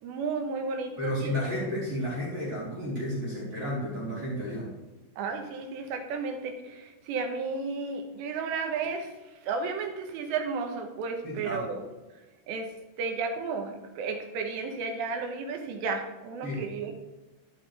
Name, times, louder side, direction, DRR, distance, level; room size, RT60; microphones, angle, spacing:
voice 1, 0.0-1.7 5.2-9.1 9.4-11.8 12.5-12.7 13.0-17.1, right 4 dB, 75° right, 4 dB, 3.2 m, -33 dB
voice 2, 1.0-4.7 11.2-11.7 16.4-16.6, equal, 40° right, -7 dB, 4.1 m, -32 dB
13.0 x 9.3 x 3.3 m, 1.1 s
omnidirectional pair, 5.1 m